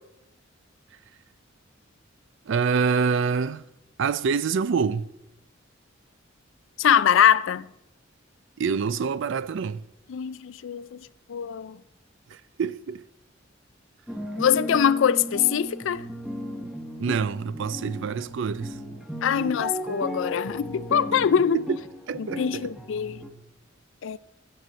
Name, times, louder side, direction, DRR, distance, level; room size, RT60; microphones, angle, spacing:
voice 1, 2.5-3.6 4.0-5.1 8.6-9.9 12.3-13.0 17.0-18.8 21.5-21.6 22.1-22.7, right 5 dB, 65° right, 0.4 m, -26 dB
voice 2, 6.8-7.7 10.1-11.0 11.3-11.8 14.4-16.0 19.2-21.6 22.2-23.2 24.0-24.2, left 8 dB, 70° left, 0.4 m, -23 dB
sound 1, 14.1-23.3, equal, ahead, 1.0 m, -35 dB
15.5 x 7.7 x 4.1 m
head